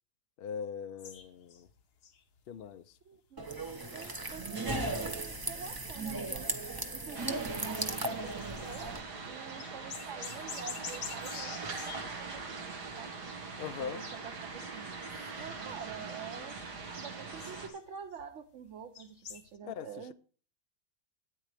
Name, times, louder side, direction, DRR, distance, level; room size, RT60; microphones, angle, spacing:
voice 1, 0.4-1.7 2.5-2.9 13.6-14.0 19.6-20.1, left 7 dB, 60° left, 0.6 m, -41 dB
sound 1, 1.0-2.8 3.5-4.6 4.9-5.2 5.7-5.9 6.3-7.1 7.4-9.1 9.5-12.3 13.1-13.7 14.0-14.2 14.6-15.3 15.6-18.3 18.6-19.6, left 7 dB, 80° left, 1.6 m, -48 dB
voice 2, 3.0-3.5 3.9-6.5 6.9-8.9 9.2-13.1 13.8-15.0 15.4-16.6 16.9-20.1, right 7 dB, 55° right, 1.0 m, -47 dB
sound 2, 3.4-9.0, right 2 dB, 20° right, 0.6 m, -36 dB
sound 3, 7.1-17.7, right 4 dB, 85° right, 2.3 m, -42 dB
13.0 x 9.4 x 3.4 m
omnidirectional pair, 1.7 m